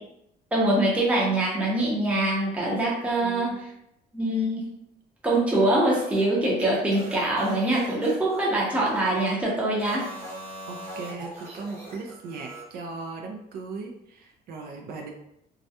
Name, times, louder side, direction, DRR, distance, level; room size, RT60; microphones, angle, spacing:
voice 1, 0.5-3.6 4.1-4.7 5.2-10.1, right 1 dB, 10° right, -5 dB, 0.6 m, -24 dB
voice 2, 3.1-3.6 10.7-15.1, right 4 dB, 65° right, 1 dB, 0.4 m, -38 dB
sound 1, 5.8-9.3 9.7-12.7, right 1 dB, 40° right, 1.1 m, -41 dB
2.3 x 2.1 x 2.7 m, 0.79 s
cardioid pair, 110°, 17 cm